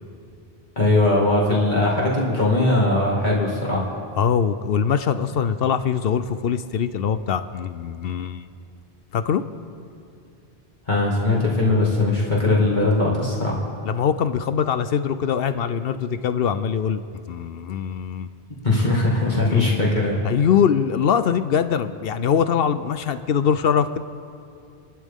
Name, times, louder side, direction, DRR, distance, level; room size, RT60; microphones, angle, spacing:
voice 1, 0.8-3.9 10.9-13.6 18.6-20.1, left 2 dB, 45° left, -5 dB, 2.4 m, -20 dB
voice 2, 4.2-8.5 9.1-9.4 13.8-17.0 17.3-18.3 19.5-19.8 20.2-24.0, left 7 dB, 70° left, 12 dB, 0.8 m, -22 dB
28.5 x 12.0 x 3.7 m, 2.6 s
omnidirectional pair, 1.1 m